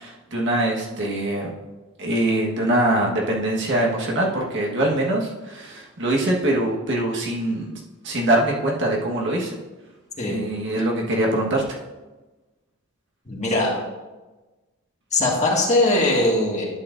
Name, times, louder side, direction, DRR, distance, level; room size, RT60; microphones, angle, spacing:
voice 1, 0.0-1.5 2.0-7.7 8.0-9.6 10.3-11.8, right 1 dB, 55° right, -2 dB, 1.5 m, -23 dB
voice 2, 13.3-13.7 15.1-16.7, left 2 dB, 35° left, -2 dB, 1.8 m, -20 dB
11.5 x 8.7 x 2.6 m, 1.2 s
head